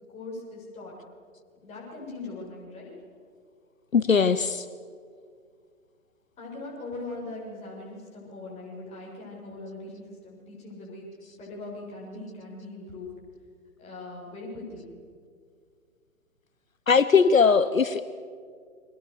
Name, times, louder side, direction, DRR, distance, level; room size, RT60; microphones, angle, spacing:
voice 1, 0.1-1.0 1.6-2.9 6.4-11.1 11.4-13.1 13.8-14.9, left 2 dB, 15° left, -3 dB, 7.1 m, -40 dB
voice 2, 3.9-4.7 16.9-18.0, left 5 dB, 70° left, 14 dB, 1.0 m, -20 dB
30.0 x 24.0 x 6.8 m, 2.1 s
figure-of-eight pair, 130°, 41 cm